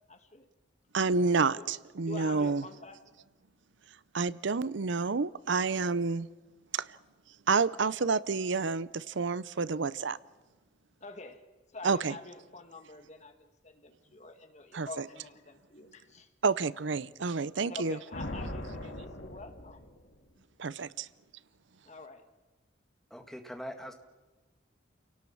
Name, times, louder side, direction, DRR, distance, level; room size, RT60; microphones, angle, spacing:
voice 1, 0.1-0.5 1.6-1.7 2.0-3.0 11.0-11.4 11.7-16.3 17.7-19.9 21.9-22.3, left 2 dB, 35° left, 7 dB, 1.8 m, -46 dB
voice 2, 0.9-2.6 4.1-6.3 6.7-7.0 7.5-10.2 11.8-12.2 14.7-15.0 16.4-18.0 20.6-21.1, right 4 dB, 75° right, 18 dB, 0.6 m, -29 dB
Thunder, 18.1-20.3, left 1 dB, 75° left, 2.6 m, -40 dB
voice 3, 23.1-23.9, equal, ahead, 5 dB, 1.9 m, -42 dB
29.0 x 18.0 x 7.1 m, 1.2 s
head